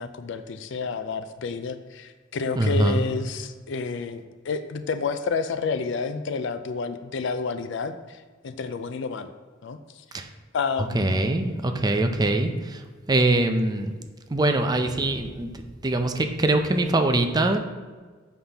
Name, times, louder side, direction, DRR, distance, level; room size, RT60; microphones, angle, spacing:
voice 1, 0.0-9.3 9.6-9.8 10.1-10.2 10.5-11.3, left 4 dB, 65° left, 10 dB, 0.4 m, -30 dB
voice 2, 2.6-3.0 10.1-10.2 10.9-12.5 13.1-13.9 14.3-15.5 15.8-17.6, right 2 dB, 20° right, 6 dB, 0.5 m, -22 dB
7.1 x 5.6 x 3.4 m, 1.5 s
head